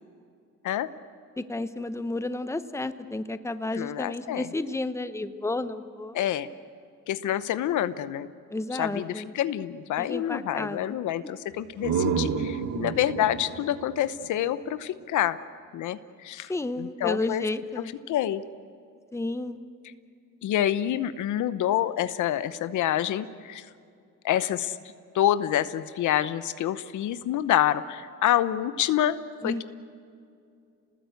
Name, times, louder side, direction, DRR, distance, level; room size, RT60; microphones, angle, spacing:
voice 1, 1.4-6.2 8.5-9.3 10.0-11.0 16.5-17.9 19.1-19.6 29.4-29.6, left 2 dB, 10° left, 11 dB, 1.0 m, -32 dB
voice 2, 3.7-4.5 6.1-6.5 7.1-8.3 8.7-15.4 15.7-16.5 16.8-17.4 18.1-18.4 20.4-23.7 24.2-24.8 25.1-29.2 29.4-29.6, left 12 dB, 80° left, 13 dB, 0.9 m, -27 dB
sound 1, 11.5-15.2, right 6 dB, 75° right, 1.6 m, -31 dB
28.5 x 19.5 x 8.2 m, 2.4 s
cardioid pair, 90°, 30 cm